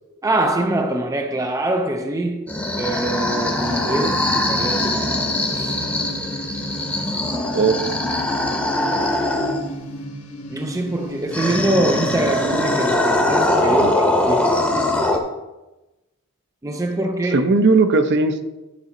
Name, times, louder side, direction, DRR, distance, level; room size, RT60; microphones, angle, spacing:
voice 1, 0.2-5.2 5.5-5.8 10.5-13.9 14.2-14.7 16.6-17.5, right 1 dB, 15° right, 0.4 m, -24 dB
sound 1, 2.5-9.8 11.3-15.2, left 1 dB, 5° left, 0.8 m, -22 dB
sound 2, 3.3-12.9, equal, 75° left, 1.4 m, -34 dB
voice 2, 17.3-18.4, right 3 dB, 50° right, 0.6 m, -17 dB
10.5 x 5.4 x 3.8 m
head